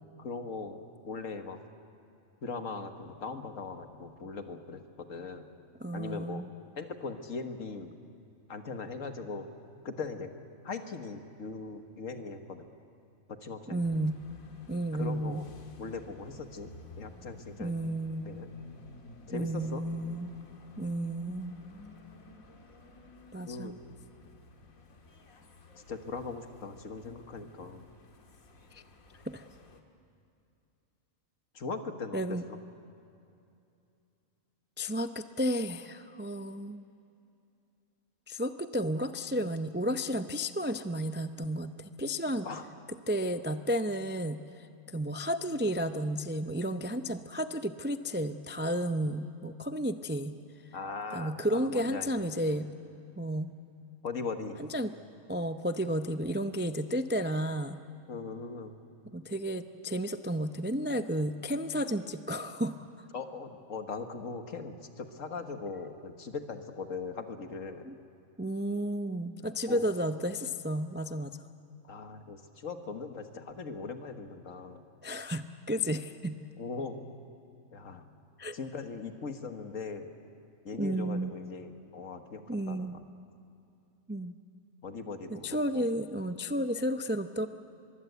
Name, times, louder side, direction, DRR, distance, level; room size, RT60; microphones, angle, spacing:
voice 1, 0.2-1.6 2.4-5.5 5.9-6.4 6.8-7.9 8.5-9.5 9.8-10.3 10.6-12.7 13.4-13.8 14.9-15.5 15.8-16.7 17.0-17.7 18.2-18.5 19.3-19.8 23.5-23.7 25.9-27.9 31.5-32.6 42.5-42.7 50.7-52.2 54.0-54.6 58.1-58.7 63.1-67.9 69.7-69.9 71.8-74.8 76.6-77.0 77.7-78.2 78.5-80.1 80.7-83.0 84.8-85.9, left 4 dB, 70° left, 6 dB, 1.8 m, -40 dB
voice 2, 5.8-6.5 13.7-14.2 14.7-15.4 17.6-18.4 19.3-20.4 20.8-21.6 23.3-23.8 28.7-28.8 29.3-29.4 32.1-32.4 34.8-36.8 38.3-42.5 43.1-50.3 51.1-52.7 53.2-53.5 54.6-54.9 55.3-57.8 59.1-62.9 67.8-67.9 68.4-71.4 75.0-76.3 78.4-78.6 80.8-81.3 82.5-82.9 84.1-84.3 85.3-87.5, equal, 15° right, 8 dB, 0.3 m, -32 dB
sound 1, 13.8-29.8, left 2 dB, 90° left, 2.2 m, -53 dB
23.5 x 23.0 x 8.1 m, 2.7 s
omnidirectional pair, 1.4 m